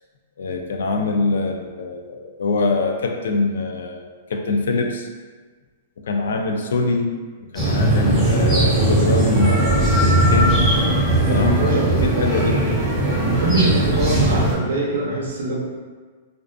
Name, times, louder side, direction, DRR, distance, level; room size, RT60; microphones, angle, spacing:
voice 1, 0.4-5.1 6.0-10.6 11.3-11.6 12.0-12.8, left 3 dB, 80° left, 4 dB, 0.3 m, -24 dB
sound 1, 7.5-14.5, right 1 dB, 5° left, 1.0 m, -18 dB
voice 2, 11.3-12.3 13.2-15.5, right 1 dB, 85° right, -4 dB, 0.6 m, -23 dB
2.4 x 2.4 x 2.2 m, 1.5 s
hypercardioid pair, 145°, 0 cm